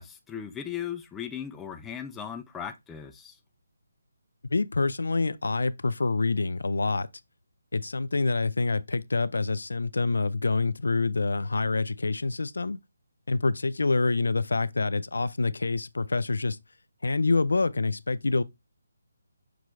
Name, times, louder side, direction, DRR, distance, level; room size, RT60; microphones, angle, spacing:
voice 1, 0.0-3.4, left 8 dB, 10° left, 0.3 m, -37 dB
voice 2, 4.5-7.1 7.7-12.8 13.3-16.6 17.0-18.4, left 3 dB, 85° left, 0.3 m, -26 dB
6.0 x 2.5 x 3.0 m
hypercardioid pair, 165°, 0 cm